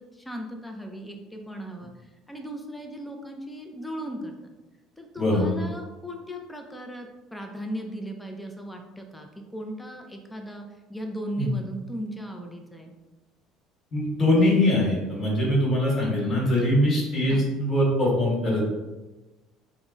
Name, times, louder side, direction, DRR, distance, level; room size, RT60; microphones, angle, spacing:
voice 1, 0.0-1.9 2.3-4.5 5.0-12.9 17.3-17.5, equal, 5° left, 3 dB, 0.5 m, -37 dB
voice 2, 5.2-5.5 11.4-11.5 13.9-18.6, left 1 dB, 35° left, -3 dB, 1.3 m, -22 dB
3.4 x 2.1 x 3.8 m, 1.1 s
cardioid pair, 110°, 0 cm